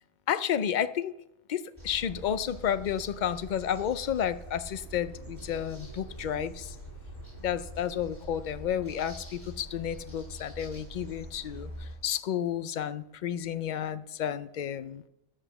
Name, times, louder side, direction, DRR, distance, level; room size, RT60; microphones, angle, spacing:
voice 1, 0.3-1.1 1.5-6.8 7.4-15.0, left 9 dB, 60° left, 14 dB, 0.5 m, -31 dB
sound 1, 1.8-11.9, right 1 dB, 10° left, 5.5 m, -45 dB
sound 2, 4.8-11.8, equal, 85° right, 1.9 m, -52 dB
9.9 x 8.1 x 6.9 m, 0.84 s
omnidirectional pair, 1.4 m